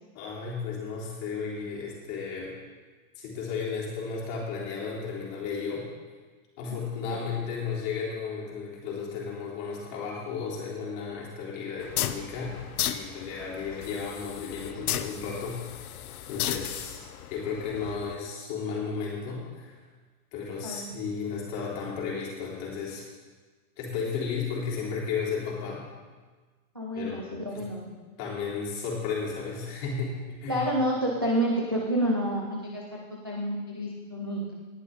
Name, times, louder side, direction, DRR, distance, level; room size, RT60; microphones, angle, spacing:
voice 1, 0.1-2.5 3.2-5.9 6.6-15.6 16.3-17.0 17.3-19.8 20.3-23.0 23.8-25.8 27.0-27.6 28.2-30.7, left 5 dB, 30° left, -4 dB, 3.5 m, -34 dB
voice 2, 6.7-7.2 20.6-20.9 26.7-27.9 30.5-34.5, equal, 20° right, -3 dB, 0.3 m, -29 dB
sound 1, 11.8-18.1, left 11 dB, 85° left, 0.9 m, -35 dB
19.0 x 10.5 x 3.8 m, 1.4 s
supercardioid pair, 170°, 43 cm